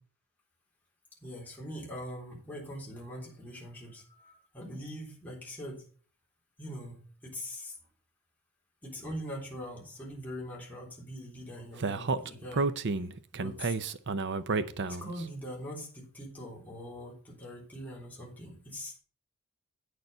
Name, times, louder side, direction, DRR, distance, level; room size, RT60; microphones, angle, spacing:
voice 1, 1.2-5.8 6.6-7.7 8.8-12.7 13.3-13.9 14.9-19.0, equal, 10° left, -4 dB, 3.6 m, -42 dB
Speech, 11.8-15.2, right 3 dB, 55° right, 0.6 m, -31 dB
9.3 x 6.7 x 5.6 m, 0.41 s
head